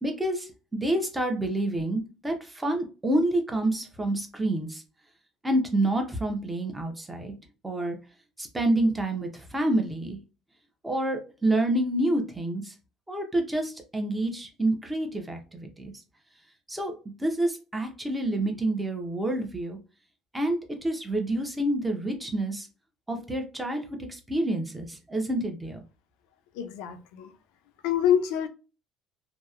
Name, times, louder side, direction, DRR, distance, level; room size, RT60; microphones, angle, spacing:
voice 1, 0.0-4.8 5.4-7.3 7.6-8.0 8.4-10.2 10.8-12.7 13.1-15.9 16.7-19.8 20.3-22.7 23.1-25.8, right 1 dB, 10° right, 0.6 m, -28 dB
voice 2, 26.6-27.3 27.8-28.5, left 9 dB, 85° left, 0.4 m, -26 dB
2.7 x 2.0 x 2.3 m
cardioid pair, 130°, 0 cm